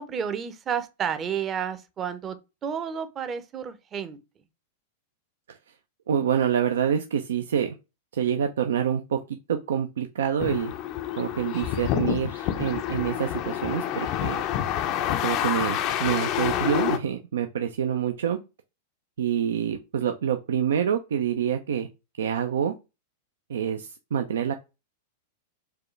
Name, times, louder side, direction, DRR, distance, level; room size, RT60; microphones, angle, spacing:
voice 1, 0.0-2.4 2.6-4.2, right 7 dB, 30° right, 0.6 m, -31 dB
voice 2, 6.1-7.8 8.1-10.7 11.2-14.4 15.2-18.4 19.2-21.9 22.2-22.7 23.5-24.5, right 8 dB, 80° right, 0.4 m, -27 dB
sound 1, 10.4-17.0, left 11 dB, 45° left, 0.5 m, -28 dB
4.7 x 2.2 x 3.1 m
hypercardioid pair, 110°, 0 cm